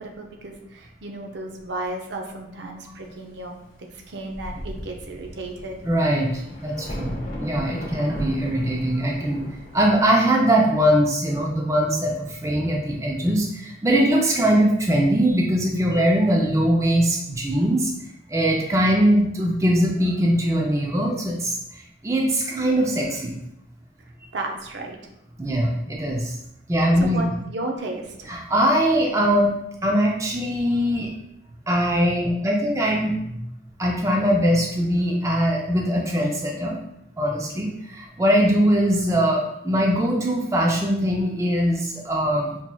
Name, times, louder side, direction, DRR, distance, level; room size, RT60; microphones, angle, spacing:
voice 1, 0.0-3.5 3.9-5.8 24.3-25.0 27.0-28.3, right 2 dB, 75° right, 2 dB, 0.5 m, -33 dB
Thunder, 3.9-4.0 4.3-10.1, equal, 50° left, 0.8 m, -37 dB
voice 2, 5.8-7.1 7.4-9.4 9.7-17.9 18.3-21.6 22.0-23.3 25.4-26.4 26.7-27.2 28.3-29.5 29.8-31.1 31.7-33.4 33.8-36.8 37.2-42.6, equal, 15° right, -1 dB, 0.4 m, -21 dB
4.4 x 2.9 x 2.2 m, 0.80 s
head